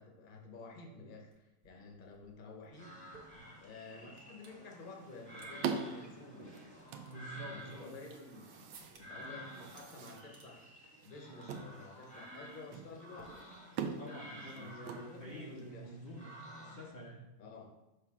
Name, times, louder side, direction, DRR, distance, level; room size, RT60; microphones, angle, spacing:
voice 1, 0.0-3.1 3.6-10.7 11.0-13.4 14.3-14.8 15.1-15.9 17.4-17.7, left 3 dB, 40° left, 1 dB, 0.7 m, -52 dB
sound 1, 1.3-1.4 1.6-4.6 5.0-5.5 5.8-5.9 6.4-8.3 8.7-9.3 9.6-10.5 10.8-11.1 11.4-11.7 12.0-12.2 13.2-13.9, right 4 dB, 60° right, 1.3 m, -60 dB
sound 2, 2.7-17.0, equal, 5° left, 1.0 m, -52 dB
Manos En Mesa, 4.6-15.7, right 6 dB, 90° right, 1.3 m, -45 dB
voice 2, 7.0-8.0 14.0-17.2, right 1 dB, 80° left, -4 dB, 0.4 m, -48 dB
5.7 x 3.5 x 5.8 m, 1.0 s
omnidirectional pair, 2.0 m